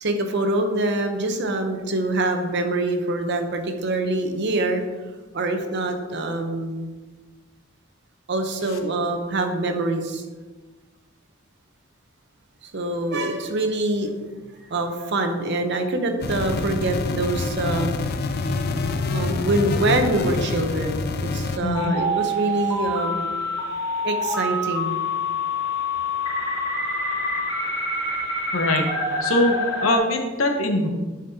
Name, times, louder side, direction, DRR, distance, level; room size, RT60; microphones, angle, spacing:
voice 1, 0.0-4.8 5.3-6.9 8.3-10.2 12.6-14.1 14.6-18.0 19.1-23.3 24.0-25.0, right 2 dB, 60° right, 5 dB, 0.8 m, -25 dB
sound 1, 16.2-21.6, left 3 dB, 50° left, 0.5 m, -26 dB
voice 2, 21.6-21.9 28.5-28.9 29.2-29.6 29.8-30.9, left 1 dB, 80° left, 4 dB, 1.0 m, -22 dB
sound 2, 21.7-30.0, left 1 dB, 20° left, 2.4 m, -26 dB
10.0 x 5.2 x 2.8 m, 1.3 s
head